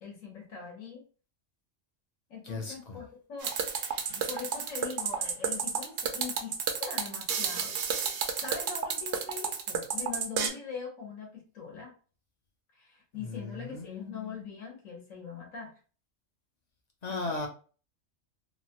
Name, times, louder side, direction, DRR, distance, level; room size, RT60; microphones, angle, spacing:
voice 1, 0.0-1.0 2.3-3.5 4.1-11.9 12.7-15.7 17.1-17.4, left 5 dB, 80° left, 1.3 m, -42 dB
voice 2, 2.4-3.0 13.1-14.4 17.0-17.5, left 3 dB, 45° left, 0.5 m, -37 dB
sound 1, 3.4-10.5, right 7 dB, 65° right, 0.8 m, -31 dB
3.0 x 2.1 x 2.7 m
omnidirectional pair, 1.3 m